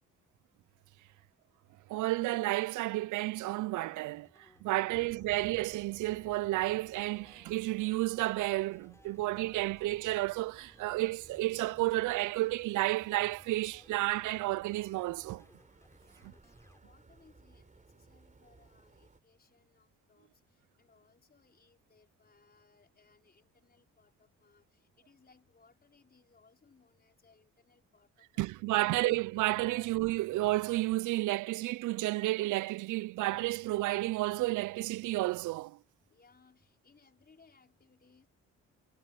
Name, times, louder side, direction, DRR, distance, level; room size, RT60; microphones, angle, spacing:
voice 1, 1.9-15.4 28.4-35.8, right 18 dB, 80° right, 0.5 m, -31 dB
sound 1, 3.7-16.8, left 1 dB, 10° left, 5.6 m, -63 dB
sound 2, 4.9-19.2, right 3 dB, 25° right, 4.1 m, -60 dB
voice 2, 15.9-29.0 36.1-38.3, left 4 dB, 30° left, 5.4 m, -66 dB
cardioid pair, 90°, 30 cm